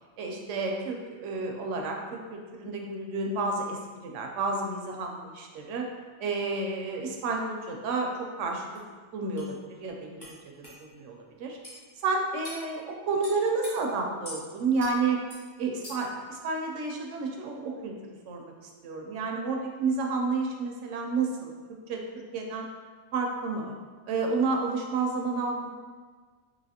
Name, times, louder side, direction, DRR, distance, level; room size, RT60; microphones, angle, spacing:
voice 1, 0.2-5.9 6.2-8.1 8.4-8.8 9.1-10.3 10.8-11.6 12.0-15.2 15.6-17.9 18.3-18.5 18.8-21.5 21.9-22.7 23.1-23.7 24.1-25.7, right 3 dB, 85° right, 1 dB, 0.9 m, -30 dB
sound 1, 8.8-8.9 9.4-9.5 10.2-10.3 10.6-10.8 11.6-11.8 12.4-12.6 13.2-13.7 14.2-14.4 14.8-14.9 15.3-15.4 15.8-16.1, left 1 dB, 20° left, 0.8 m, -42 dB
3.9 x 2.7 x 2.8 m, 1.5 s
omnidirectional pair, 1.2 m